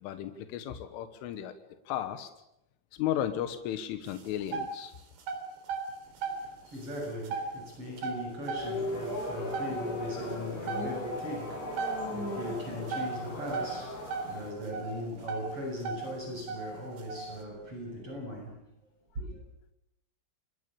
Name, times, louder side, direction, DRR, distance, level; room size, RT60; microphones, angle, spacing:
voice 1, 0.0-1.5 1.9-2.3 3.0-4.9, left 11 dB, 85° left, 3.9 m, -34 dB
sound 1, 4.1-4.8 5.2-6.5 6.8-7.5 8.0-8.9 9.3-9.4 9.5-9.8 10.4-10.5 10.7-10.9 11.2-11.3 11.8-12.1 12.9-13.8 14.0-15.5 15.8-16.1 16.5-17.3, right 5 dB, 75° right, 6.0 m, -34 dB
voice 2, 6.0-18.6 19.1-19.4, left 1 dB, 30° right, 8.1 m, -39 dB
sound 2, 8.6-14.5, left 1 dB, 65° left, 9.9 m, -37 dB
29.0 x 22.0 x 7.0 m
omnidirectional pair, 5.5 m